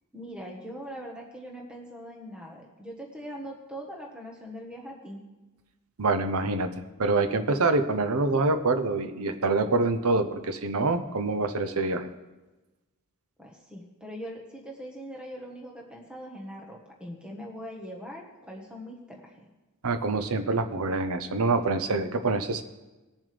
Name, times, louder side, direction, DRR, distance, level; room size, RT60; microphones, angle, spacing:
voice 1, 0.1-5.2 13.4-19.5, equal, 5° right, -1 dB, 1.3 m, -41 dB
voice 2, 6.0-6.7 7.0-12.1 19.8-22.6, right 3 dB, 80° right, 9 dB, 0.8 m, -26 dB
20.0 x 7.3 x 3.4 m, 1.1 s
head